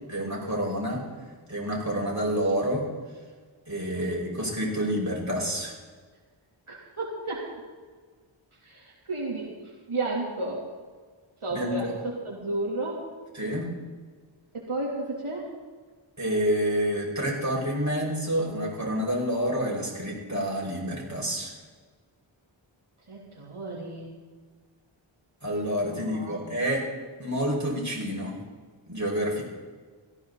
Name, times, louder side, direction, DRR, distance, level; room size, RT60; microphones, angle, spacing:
voice 1, 0.1-1.0 1.5-2.8 3.7-5.7 11.5-11.9 13.3-13.7 16.2-21.5 25.4-26.8 27.2-28.4 28.9-29.4, equal, 35° right, -3 dB, 5.5 m, -28 dB
voice 2, 6.7-7.5 8.6-9.5 9.9-10.6 11.4-13.0 14.5-15.5 23.1-24.1 25.8-26.5, right 2 dB, 80° right, -4 dB, 3.2 m, -33 dB
18.0 x 14.5 x 4.1 m, 1.5 s
wide cardioid pair, 65°, 50 cm